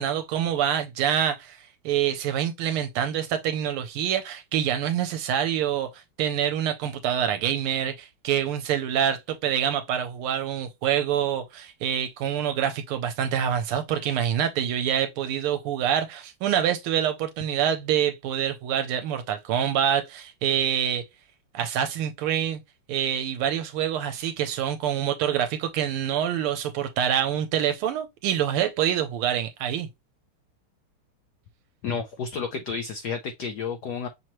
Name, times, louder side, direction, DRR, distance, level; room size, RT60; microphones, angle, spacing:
voice 1, 0.0-21.0 21.5-22.6 22.9-29.9, right 9 dB, 80° right, 1.4 m, -26 dB
voice 2, 31.8-34.1, left 5 dB, 80° left, 0.9 m, -31 dB
6.1 x 2.9 x 2.9 m
omnidirectional pair, 2.4 m